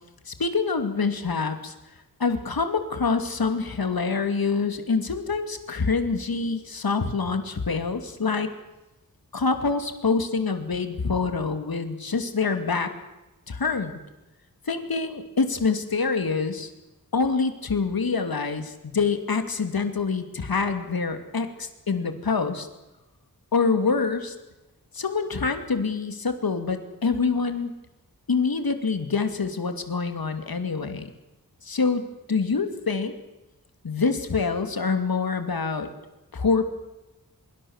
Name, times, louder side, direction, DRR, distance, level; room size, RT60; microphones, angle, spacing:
voice 1, 0.3-1.7 2.2-8.5 9.3-12.9 13.5-14.0 14.7-16.7 17.1-22.7 23.5-24.3 24.9-27.7 28.3-31.1 31.6-33.1 33.8-35.9 36.3-36.7, left 4 dB, 75° left, 8 dB, 2.7 m, -26 dB
24.5 x 23.0 x 7.3 m, 1.0 s
wide cardioid pair, 85°, 36 cm